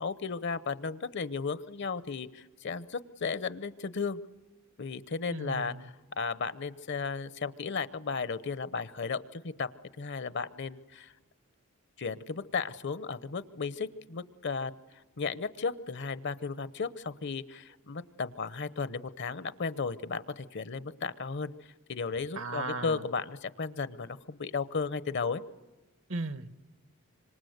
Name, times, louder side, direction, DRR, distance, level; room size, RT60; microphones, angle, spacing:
voice 1, 0.0-4.2 4.8-9.7 10.0-11.1 12.0-14.7 15.2-21.5 21.9-25.4, left 5 dB, 55° left, 0.8 m, -34 dB
voice 2, 5.3-5.9 22.3-23.0 26.1-26.5, right 3 dB, 65° right, 1.2 m, -36 dB
26.0 x 26.0 x 8.0 m
head